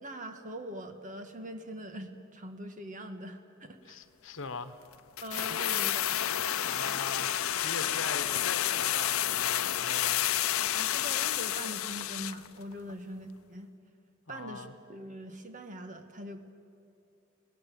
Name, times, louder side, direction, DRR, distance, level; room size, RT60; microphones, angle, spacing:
voice 1, 0.0-4.0 5.2-6.2 10.7-13.7 14.3-16.4, equal, 40° right, 6 dB, 1.7 m, -42 dB
voice 2, 3.9-4.8 5.5-5.6 6.6-7.3 7.6-10.3 12.9-13.0 14.3-14.7, left 4 dB, 65° left, 10 dB, 1.3 m, -41 dB
sound 1, 5.2-12.5 12.7-12.8, left 11 dB, 80° left, 0.7 m, -30 dB
26.0 x 19.0 x 7.8 m, 2.8 s
head